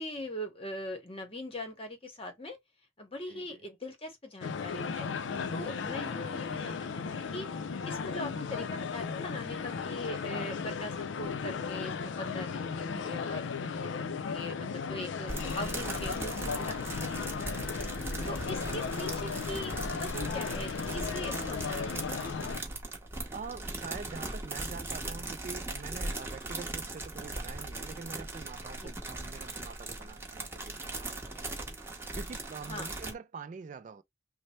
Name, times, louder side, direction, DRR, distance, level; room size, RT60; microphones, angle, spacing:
voice 1, 0.0-2.6 3.0-5.1 5.5-7.5 7.8-17.7 18.3-22.5 28.8-28.9 32.6-32.9, left 1 dB, 30° left, 0.8 m, -41 dB
voice 2, 3.3-3.6 10.7-10.9 17.1-17.3 23.3-34.0, right 5 dB, 40° right, 0.3 m, -45 dB
sound 1, 4.4-22.6, left 5 dB, 75° left, 0.4 m, -36 dB
sound 2, 15.3-33.1, right 2 dB, 15° right, 0.8 m, -39 dB
3.2 x 2.0 x 4.1 m
head